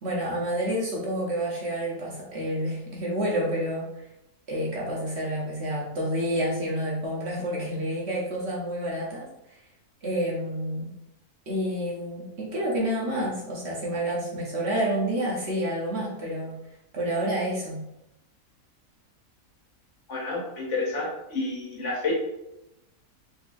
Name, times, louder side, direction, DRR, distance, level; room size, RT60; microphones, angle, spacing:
voice 1, 0.0-3.9 4.5-9.3 10.0-10.9 11.5-16.5 16.9-17.8, right 1 dB, 55° right, -4 dB, 0.9 m, -29 dB
voice 2, 20.1-22.1, left 3 dB, 60° left, -2 dB, 1.1 m, -30 dB
4.0 x 2.7 x 2.5 m, 0.90 s
omnidirectional pair, 1.6 m